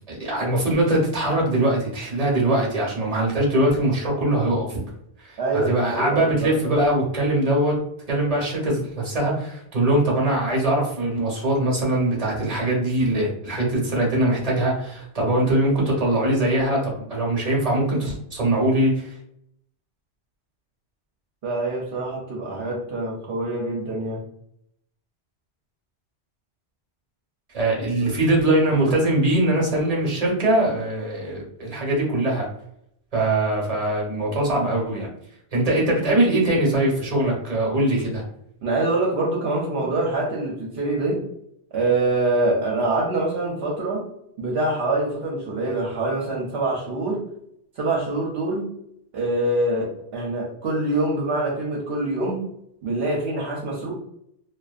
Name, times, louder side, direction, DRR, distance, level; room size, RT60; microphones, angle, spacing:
voice 1, 0.1-4.8 5.2-7.8 8.1-19.1 27.5-32.5 33.1-35.1 35.5-38.2, right 1 dB, 40° right, -2 dB, 0.8 m, -22 dB
voice 2, 5.4-6.5 21.4-24.2 28.0-28.2 38.6-41.2 41.7-44.0 44.4-47.2 47.8-48.7 49.1-52.4 52.8-53.9, right 2 dB, 70° right, -3 dB, 0.9 m, -25 dB
2.5 x 2.2 x 2.4 m, 0.75 s
omnidirectional pair, 1.1 m